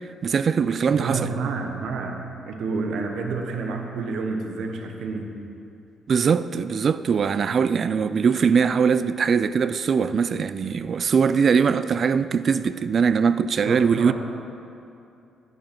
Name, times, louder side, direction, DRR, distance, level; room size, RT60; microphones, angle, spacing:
voice 1, 0.2-1.2 6.1-14.1, right 6 dB, 50° right, 0.4 m, -21 dB
voice 2, 0.9-5.3 13.7-14.1, right 4 dB, 75° right, 1.1 m, -29 dB
10.0 x 9.7 x 4.6 m
cardioid pair, 90°, 0 cm